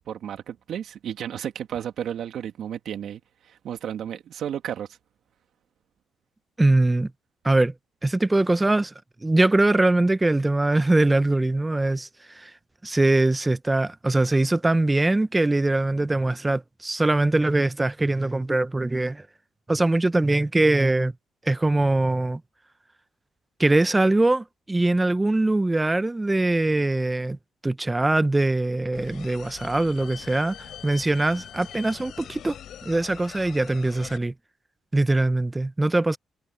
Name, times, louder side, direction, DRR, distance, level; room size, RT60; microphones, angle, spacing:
voice 1, 0.1-4.9, right 9 dB, 70° right, 2.5 m, -33 dB
voice 2, 6.6-7.1 7.4-7.7 8.0-8.9 9.2-12.5 12.8-19.3 19.7-21.1 21.4-22.4 23.6-27.4 27.6-30.6 30.8-32.6 32.8-34.3 34.9-36.2, right 2 dB, 15° right, 0.8 m, -22 dB
sound 1, 28.9-34.2, left 10 dB, 70° left, 7.2 m, -42 dB
cardioid pair, 90°, 0 cm